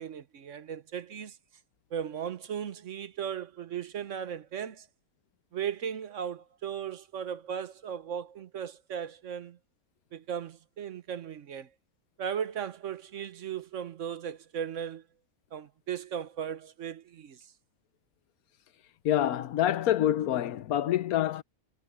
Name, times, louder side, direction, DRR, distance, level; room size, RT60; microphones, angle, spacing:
voice 1, 0.0-1.4 1.9-4.9 5.5-9.6 10.1-11.7 12.2-15.0 15.5-17.4, right 8 dB, 60° right, 1.2 m, -37 dB
voice 2, 19.0-21.4, left 12 dB, 90° left, 1.3 m, -26 dB
omnidirectional pair, 1.5 m